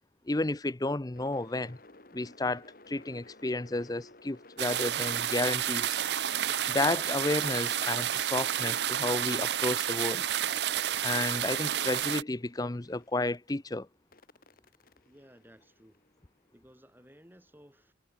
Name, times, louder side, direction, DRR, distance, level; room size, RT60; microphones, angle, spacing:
voice 1, 0.3-1.8 2.1-6.0 6.7-10.3 11.0-13.9, left 2 dB, 20° left, 0.7 m, -32 dB
sound 1, 1.1-13.5 14.1-16.2, left 2 dB, 50° left, 2.8 m, -55 dB
sound 2, 4.6-12.2, right 10 dB, 65° right, 0.6 m, -30 dB
voice 2, 15.1-16.0 16.5-17.9, equal, 10° right, 5.7 m, -57 dB
head